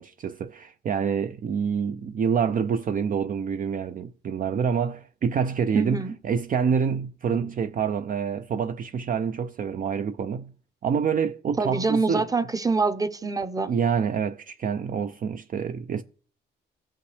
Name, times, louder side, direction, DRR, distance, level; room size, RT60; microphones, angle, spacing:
voice 1, 0.0-10.5 10.8-12.3 13.7-16.0, right 6 dB, 45° right, 0.5 m, -27 dB
voice 2, 5.7-6.1 11.6-13.7, right 4 dB, 20° right, 0.8 m, -25 dB
16.5 x 5.6 x 3.3 m
cardioid pair, 90°, 20 cm